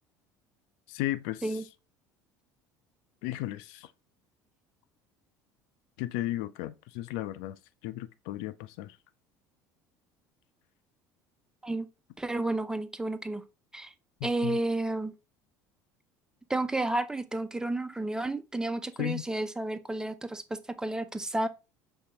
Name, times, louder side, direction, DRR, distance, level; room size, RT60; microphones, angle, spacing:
voice 1, 0.9-1.5 3.2-3.9 6.0-7.6 7.8-8.9 14.2-14.6 19.0-19.2, left 15 dB, 75° left, 0.4 m, -34 dB
voice 2, 12.2-13.4 13.7-13.9 14.2-15.1 16.5-21.5, right 2 dB, 5° right, 0.5 m, -31 dB
5.2 x 3.3 x 2.9 m
hypercardioid pair, 80°, 10 cm